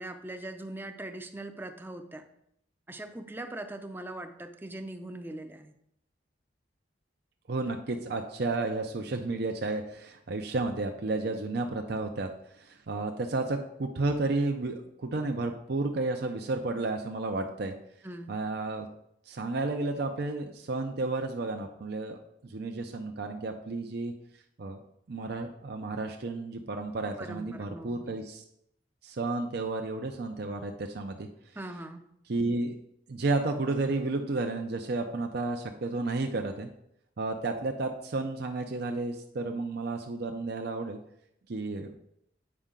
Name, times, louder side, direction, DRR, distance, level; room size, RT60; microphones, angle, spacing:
voice 1, 0.0-2.3 2.9-5.7 18.0-18.3 27.2-28.1 31.6-32.0, right 1 dB, 10° right, 7 dB, 0.5 m, -41 dB
voice 2, 7.5-12.3 12.6-17.7 18.3-18.9 19.3-24.1 24.6-24.8 25.1-28.4 29.0-31.3 32.3-32.7 33.1-36.7 37.2-41.0 41.5-41.9, right 3 dB, 60° right, 4 dB, 0.6 m, -32 dB
8.5 x 5.5 x 3.8 m, 0.76 s
head